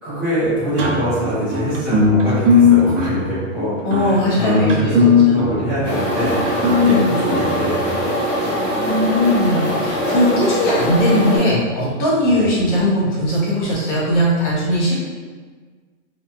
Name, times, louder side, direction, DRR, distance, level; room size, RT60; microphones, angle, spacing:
voice 1, 0.0-8.5 12.3-12.5, equal, 5° right, -14 dB, 0.8 m, -24 dB
sound 1, 0.8-8.2, left 4 dB, 75° right, 0.6 m, -18 dB
voice 2, 3.8-5.0 5.3-5.4 6.8-7.1 8.8-14.9, equal, 40° left, -6 dB, 0.8 m, -19 dB
sound 2, 5.8-11.4, equal, 15° left, 0.3 m, -22 dB
2.9 x 2.7 x 2.2 m, 1.5 s
hypercardioid pair, 165°, 37 cm